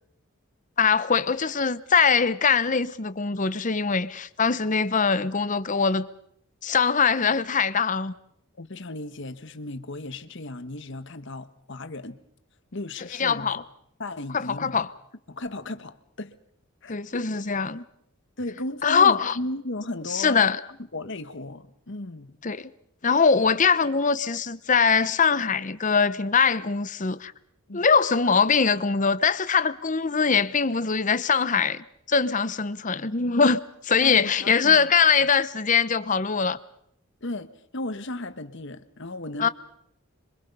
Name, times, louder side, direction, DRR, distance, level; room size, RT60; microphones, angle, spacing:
voice 1, 0.8-6.1 6.6-8.1 13.2-13.6 14.3-14.9 16.9-17.8 18.8-19.3 20.1-20.6 22.4-22.7 23.0-27.3 27.7-36.6 39.4-39.5, left 5 dB, 35° left, 0.8 m, -22 dB
voice 2, 8.6-12.2 12.7-13.5 14.0-14.8 15.3-16.3 16.8-17.2 18.4-20.4 20.9-22.4 27.7-27.9 34.0-34.9 35.2-35.3 37.2-39.5, left 2 dB, 60° left, 1.3 m, -35 dB
27.0 x 23.5 x 5.5 m
head